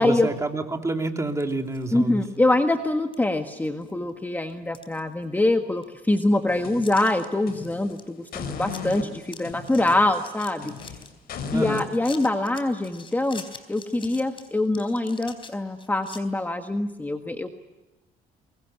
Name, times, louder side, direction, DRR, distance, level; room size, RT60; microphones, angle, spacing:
voice 1, 0.0-2.2 11.5-11.9, right 2 dB, 15° right, 4 dB, 3.0 m, -28 dB
sound 1, 1.3-1.9 2.3-2.4 3.1-3.2 3.6-4.1 4.5-5.5 5.8-5.9 6.8-7.3 7.6-8.0 8.3-8.4 8.7-9.0 9.2-11.1 11.6-16.2, left 5 dB, 30° left, 3.8 m, -45 dB
voice 2, 1.9-10.7 11.5-13.4 13.7-17.5, left 2 dB, 10° left, 6 dB, 1.5 m, -24 dB
sound 2, 6.5-7.9 8.3-11.9, left 6 dB, 65° left, 5.5 m, -37 dB
24.0 x 22.5 x 9.9 m, 1.1 s
cardioid pair, 110°, 17 cm